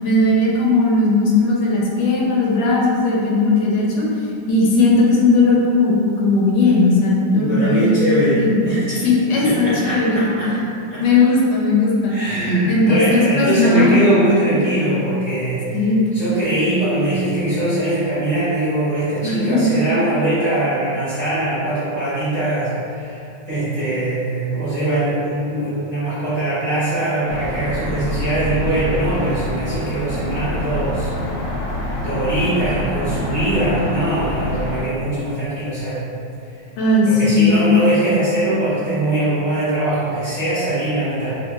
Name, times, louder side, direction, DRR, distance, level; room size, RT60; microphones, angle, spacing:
voice 1, 0.0-4.1 4.5-8.6 9.0-10.3 11.0-12.3 12.7-14.2 15.7-16.0 19.2-19.9 36.8-37.8, left 2 dB, 80° left, -3 dB, 1.3 m, -17 dB
voice 2, 7.3-9.0 9.4-10.5 10.9-11.0 12.1-15.9 16.1-31.1 32.0-36.0 37.0-41.3, right 1 dB, 30° right, -13 dB, 0.9 m, -21 dB
sound 1, 27.3-34.8, left 1 dB, 65° left, 1.1 m, -26 dB
3.0 x 2.5 x 3.2 m, 2.6 s
omnidirectional pair, 1.9 m